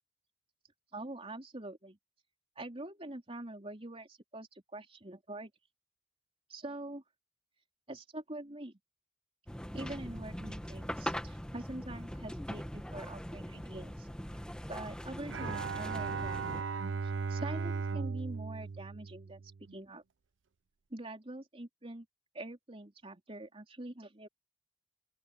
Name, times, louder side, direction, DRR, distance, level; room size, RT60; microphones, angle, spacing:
voice 1, 0.9-2.0 2.6-5.5 6.5-7.0 7.9-8.7 9.7-14.4 14.7-16.7 17.0-19.4 19.7-20.0 20.9-22.1 22.3-24.3, right 1 dB, 30° right, 3.8 m, -45 dB
sound 1, 9.5-16.6, equal, 5° left, 1.7 m, -41 dB
Bowed string instrument, 15.3-19.8, right 5 dB, 85° right, 0.5 m, -37 dB
open air
head